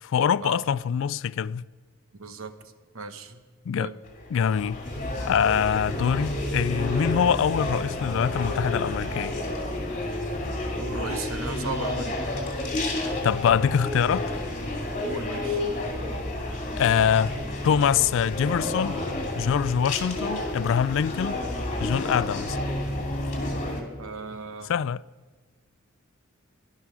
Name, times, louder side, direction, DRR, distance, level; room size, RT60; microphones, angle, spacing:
voice 1, 0.0-1.7 3.7-3.9 4.3-4.8 5.3-9.4 13.0-14.4 16.8-17.3 17.6-19.0 19.3-21.4 21.8-22.6 24.6-25.0, left 7 dB, 65° left, 0.3 m, -24 dB
voice 2, 2.2-2.5 2.9-3.4 3.8-4.0 10.8-12.2 15.0-15.6 24.0-24.7, right 3 dB, 70° right, 1.1 m, -36 dB
sound 1, 4.0-23.8, left 1 dB, 35° left, 2.6 m, -30 dB
17.0 x 11.0 x 6.1 m
head